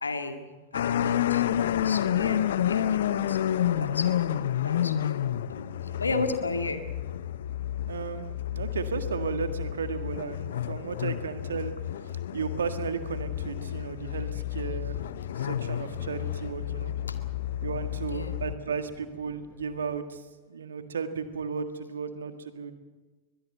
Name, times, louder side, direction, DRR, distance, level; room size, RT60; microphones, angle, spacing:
voice 1, 0.0-0.5 0.7-6.8 17.1-17.2 18.0-18.4, left 3 dB, 75° left, 7 dB, 2.1 m, -35 dB
sound 1, 0.7-18.6, left 10 dB, 60° left, 0.7 m, -30 dB
voice 2, 7.9-11.7 12.3-15.0 15.4-16.9 17.6-20.2 20.5-22.7, right 6 dB, 70° right, 9 dB, 1.7 m, -34 dB
sound 2, 12.4-20.0, left 1 dB, 10° left, 5.7 m, -52 dB
22.5 x 21.0 x 8.1 m, 1.3 s
figure-of-eight pair, 90°, 0 cm